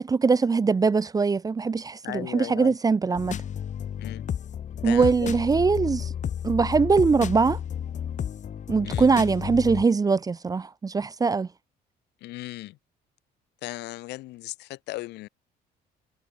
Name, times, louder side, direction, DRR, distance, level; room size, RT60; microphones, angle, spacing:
voice 1, 0.0-3.4 4.8-6.1 6.4-7.6 8.7-11.5, right 4 dB, 20° right, 0.7 m, -22 dB
voice 2, 2.0-2.7 4.0-4.2 4.8-5.4 8.8-9.1 12.2-12.8 13.6-15.3, left 18 dB, 85° left, 3.4 m, -36 dB
sound 1, 3.2-9.8, left 9 dB, 45° left, 1.6 m, -32 dB
cardioid pair, 110°, 17 cm